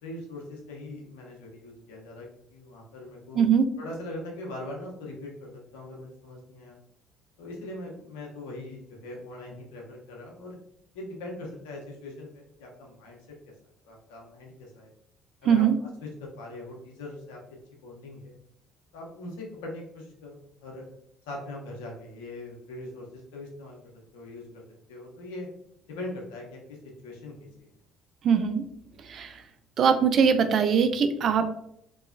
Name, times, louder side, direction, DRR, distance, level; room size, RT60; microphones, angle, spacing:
voice 1, 0.0-3.4 3.8-6.8 7.4-10.6 10.9-13.4 13.8-14.9 15.4-17.4 17.8-18.3 18.9-20.9 21.3-24.6 24.9-25.5 25.9-26.8 27.0-27.7, left 2 dB, 85° left, -1 dB, 0.7 m, -41 dB
voice 2, 15.4-15.8 28.2-28.6 29.1-29.4 29.8-31.5, right 7 dB, 55° right, 9 dB, 0.3 m, -22 dB
2.8 x 2.2 x 2.5 m, 0.74 s
hypercardioid pair, 60°, 0 cm